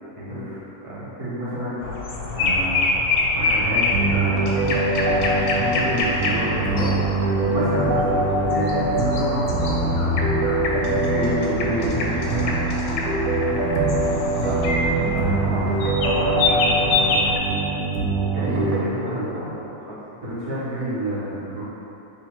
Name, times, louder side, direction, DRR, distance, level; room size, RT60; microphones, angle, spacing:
voice 1, 0.1-1.0 14.4-17.3 18.3-20.0, right 1 dB, 55° right, -9 dB, 0.3 m, -32 dB
voice 2, 1.0-1.9 2.3-9.9 10.7-12.6 18.1-18.8 19.1-19.2 20.2-21.6, right 1 dB, 90° right, -13 dB, 1.7 m, -29 dB
sound 1, 1.8-17.4, left 3 dB, 80° left, 1.1 m, -26 dB
sound 2, 3.9-18.8, right 2 dB, 70° right, 1.0 m, -23 dB
3.5 x 2.9 x 4.3 m, 2.9 s
omnidirectional pair, 1.6 m